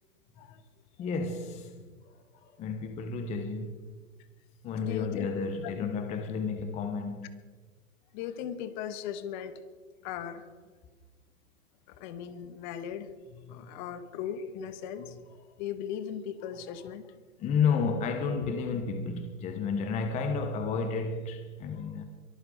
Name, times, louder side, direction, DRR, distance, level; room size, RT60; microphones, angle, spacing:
voice 1, 1.0-4.0 4.6-7.4 13.5-13.7 17.4-22.0, left 5 dB, 15° left, 1.0 m, -32 dB
voice 2, 4.8-5.3 5.6-5.9 8.1-9.5 10.0-10.5 11.9-13.1 13.5-15.2 15.6-17.1, left 9 dB, 35° left, 1.3 m, -38 dB
23.0 x 13.5 x 3.9 m
hypercardioid pair, 140°, 41 cm